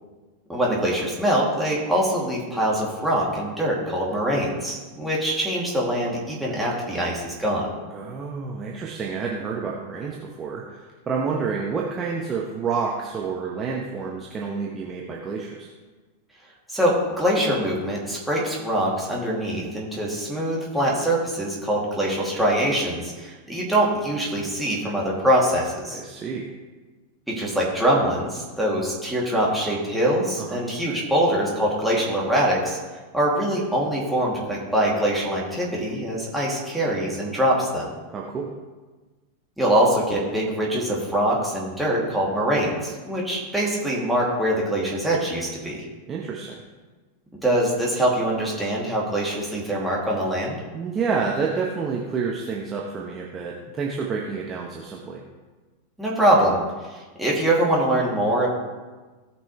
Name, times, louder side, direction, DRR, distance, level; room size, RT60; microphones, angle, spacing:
voice 1, 0.5-7.7 16.7-26.0 27.3-32.8 33.1-37.9 39.6-45.8 47.4-50.6 56.0-56.6 56.9-58.5, right 1 dB, ahead, -5 dB, 2.7 m, -23 dB
voice 2, 7.9-15.7 25.9-26.5 30.4-30.6 38.1-38.5 46.1-46.6 50.7-55.2, right 5 dB, 25° right, -2 dB, 1.1 m, -29 dB
17.0 x 6.0 x 3.3 m, 1.3 s
figure-of-eight pair, 90°, 0 cm